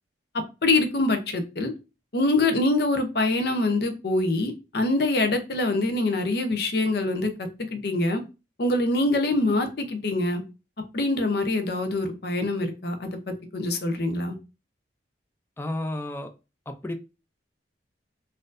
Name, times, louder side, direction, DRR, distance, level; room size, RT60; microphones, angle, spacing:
voice 1, 0.6-1.7 2.1-7.3 7.7-8.2 8.6-10.4 10.9-14.4, left 2 dB, 60° left, 0.6 m, -24 dB
voice 2, 15.6-16.3 16.7-16.9, left 1 dB, 10° left, 0.3 m, -31 dB
4.2 x 2.5 x 2.5 m
head